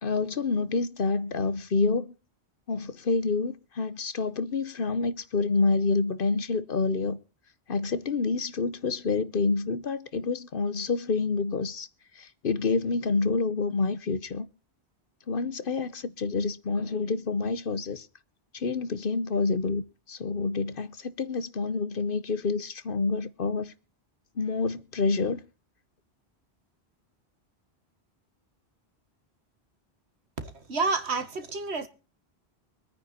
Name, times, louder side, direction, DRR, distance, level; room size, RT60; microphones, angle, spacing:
voice 1, 0.0-2.1 2.7-7.2 7.7-11.9 12.2-14.5 15.3-18.1 18.5-19.8 20.1-23.7 24.4-25.4, left 4 dB, 55° left, 1.1 m, -28 dB
voice 2, 30.4-31.9, right 4 dB, 75° right, 2.0 m, -29 dB
24.0 x 9.4 x 4.3 m
omnidirectional pair, 1.1 m